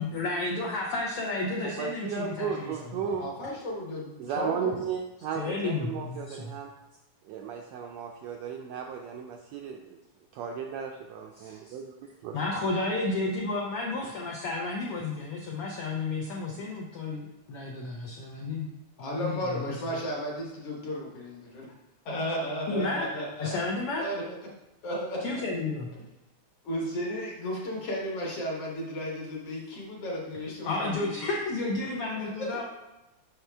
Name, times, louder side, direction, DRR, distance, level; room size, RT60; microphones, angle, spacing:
voice 1, 0.0-2.9 5.3-6.5 11.4-11.7 12.3-18.7 19.0-19.8 22.7-23.1 23.4-24.0 25.2-25.9 30.6-32.6, left 3 dB, 85° left, -1 dB, 1.2 m, -32 dB
voice 2, 1.6-3.3 4.2-6.7 7.3-10.0 10.3-11.9 12.2-12.4 14.0-14.1, right 6 dB, 85° right, 2 dB, 1.5 m, -35 dB
voice 3, 3.2-4.9 19.0-21.7 22.1-23.7 24.0-24.4 24.8-25.4 26.6-31.3 31.9-32.0 32.4-32.6, equal, 60° left, -2 dB, 1.9 m, -34 dB
6.0 x 5.6 x 3.3 m, 0.98 s
omnidirectional pair, 3.5 m